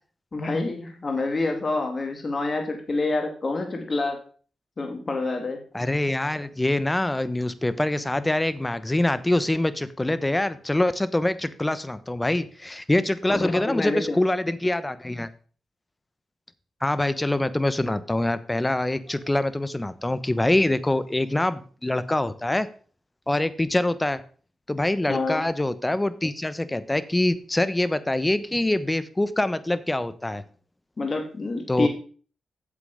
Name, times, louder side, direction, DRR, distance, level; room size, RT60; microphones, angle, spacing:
voice 1, 0.3-4.2 4.8-5.6 13.3-14.2 25.1-25.4 31.0-31.9, left 3 dB, 40° left, 4 dB, 2.4 m, -27 dB
voice 2, 5.7-15.3 16.8-22.7 23.3-24.2 24.7-30.4 31.7-31.9, left 1 dB, 15° left, 14 dB, 0.9 m, -24 dB
8.5 x 7.5 x 5.0 m, 0.41 s
cardioid pair, 55°, 0 cm